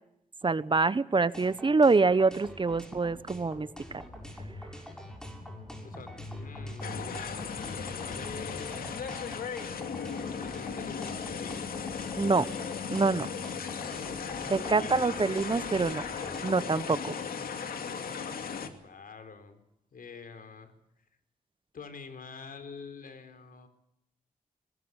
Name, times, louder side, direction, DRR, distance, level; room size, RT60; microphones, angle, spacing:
voice 1, 0.4-3.7 3.9-4.0 12.2-12.5 12.9-13.3 14.5-17.1, right 4 dB, 35° right, 16 dB, 1.1 m, -26 dB
sound 1, 1.3-16.8, equal, 5° left, 6.7 m, -47 dB
sound 2, 3.8-17.7, left 2 dB, 55° left, 7.8 m, -48 dB
voice 2, 5.8-9.4 10.4-11.7 14.3-15.1 18.6-19.6 19.9-20.7 21.7-23.7, left 5 dB, 70° left, 9 dB, 4.4 m, -46 dB
sound 3, 6.8-18.7, left 6 dB, 90° left, 2.6 m, -36 dB
23.0 x 20.5 x 8.2 m, 0.81 s
cardioid pair, 80°, 15 cm